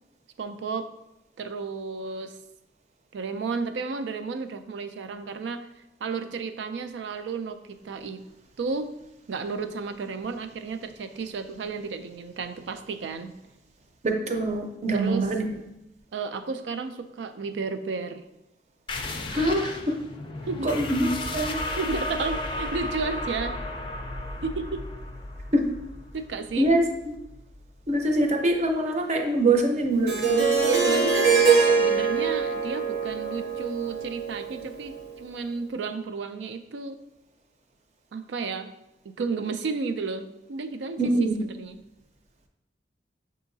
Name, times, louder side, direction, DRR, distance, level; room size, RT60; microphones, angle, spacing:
voice 1, 0.4-0.9 1.4-2.4 3.1-5.7 6.0-8.2 8.6-8.9 9.3-13.3 14.9-15.3 16.1-18.2 20.5-20.7 21.8-23.5 24.4-24.8 26.1-26.7 30.6-37.0 38.1-38.7 39.0-41.1 41.4-41.8, right 4 dB, 85° right, 9 dB, 0.4 m, -32 dB
voice 2, 14.0-15.5 19.3-20.0 20.6-21.1 21.3-21.6 25.5-25.7 26.6-27.2 27.9-30.5 41.0-41.4, right 1 dB, 40° right, 3 dB, 0.6 m, -24 dB
sound 1, 18.9-28.1, left 1 dB, 30° left, 0.4 m, -34 dB
Harp, 30.1-35.0, right 5 dB, 70° right, 0.8 m, -23 dB
6.9 x 2.8 x 2.6 m, 0.91 s
head